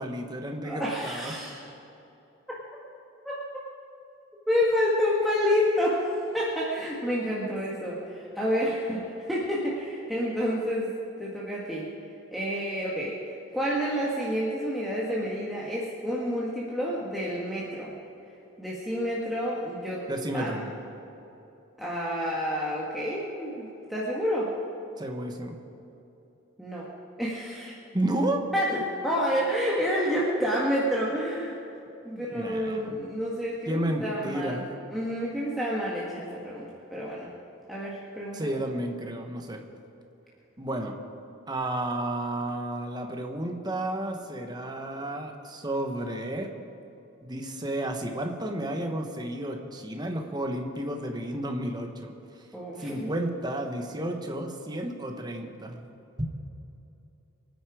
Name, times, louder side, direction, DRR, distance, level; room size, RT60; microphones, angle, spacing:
voice 1, 0.0-1.3 20.1-20.6 25.0-25.6 27.9-28.5 32.1-33.0 33.7-34.7 38.3-39.6 40.6-40.9 41.5-46.5 47.2-52.1 52.8-55.8 56.2-56.3, right 1 dB, 20° right, 3 dB, 1.3 m, -32 dB
voice 2, 0.6-1.6 3.2-3.4 4.5-10.9 11.2-11.9 12.3-17.9 18.6-20.0 20.3-20.7 21.8-24.5 26.6-26.9 27.2-27.7 28.5-31.6 32.0-34.6 34.9-37.3 37.7-38.6 52.5-53.1, equal, ahead, -7 dB, 1.5 m, -29 dB
24.0 x 9.5 x 5.0 m, 2.9 s
head